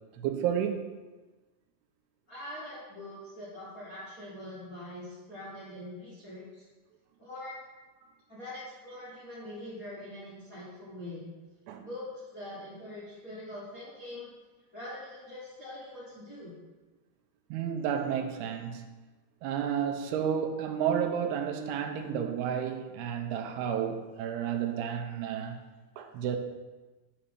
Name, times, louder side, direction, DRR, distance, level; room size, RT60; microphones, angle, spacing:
voice 1, 0.2-0.9 11.7-11.9 17.5-18.9 19.4-25.6 26.0-26.4, right 8 dB, 80° right, 5 dB, 2.5 m, -31 dB
voice 2, 2.3-6.6 7.2-7.6 8.3-11.3 11.8-14.3 14.7-16.6, left 1 dB, 80° left, -9 dB, 0.7 m, -43 dB
6.5 x 5.0 x 5.9 m, 1.2 s
omnidirectional pair, 5.0 m